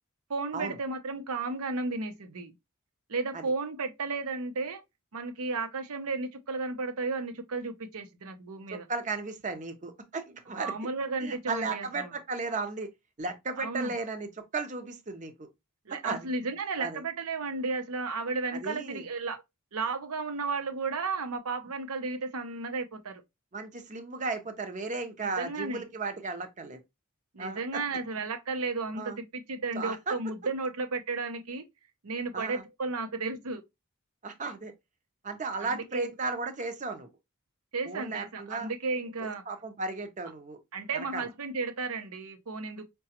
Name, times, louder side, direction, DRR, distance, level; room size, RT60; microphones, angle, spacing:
voice 1, 0.3-2.5 3.1-4.8 5.1-8.9 10.5-12.1 13.6-13.9 15.9-19.4 19.7-23.2 25.2-25.8 27.3-31.6 32.0-33.6 35.6-36.1 37.7-39.4 40.7-42.8, right 3 dB, 80° right, 0.7 m, -33 dB
voice 2, 8.7-10.7 11.2-12.9 13.2-15.5 15.9-16.3 16.8-17.0 18.5-19.0 23.5-26.8 27.4-27.8 29.0-29.2 29.7-30.1 32.3-32.6 34.2-34.7 35.2-37.1 37.8-38.7 39.2-40.6 40.9-41.3, right 3 dB, 35° right, 0.6 m, -35 dB
4.8 x 2.3 x 2.8 m
head